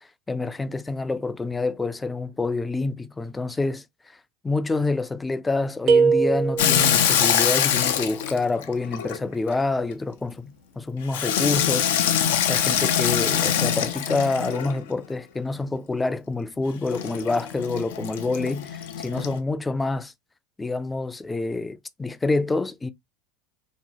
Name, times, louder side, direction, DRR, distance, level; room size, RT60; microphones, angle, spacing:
voice 1, 0.0-4.2 4.4-12.2 12.5-20.1 20.6-22.9, left 3 dB, 15° left, 0.3 m, -27 dB
sound 1, 5.9-7.1, right 5 dB, 45° right, 0.5 m, -20 dB
Water tap faucet / Sink (filling or washing), 6.6-9.5 11.1-14.8 16.9-19.4, left 9 dB, 85° left, 0.4 m, -24 dB
2.9 x 2.2 x 2.8 m
supercardioid pair, 100°, 0 cm